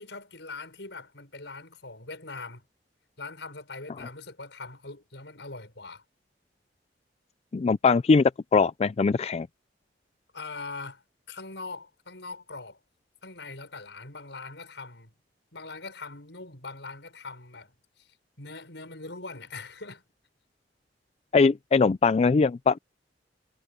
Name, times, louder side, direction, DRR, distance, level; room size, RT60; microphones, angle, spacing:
voice 1, 0.0-2.7 3.2-6.0 10.3-11.0 11.3-12.8 13.2-15.1 15.5-20.0, left 3 dB, 75° left, 6.9 m, -42 dB
voice 2, 7.5-9.5 21.3-22.8, left 4 dB, 35° left, 0.3 m, -21 dB
head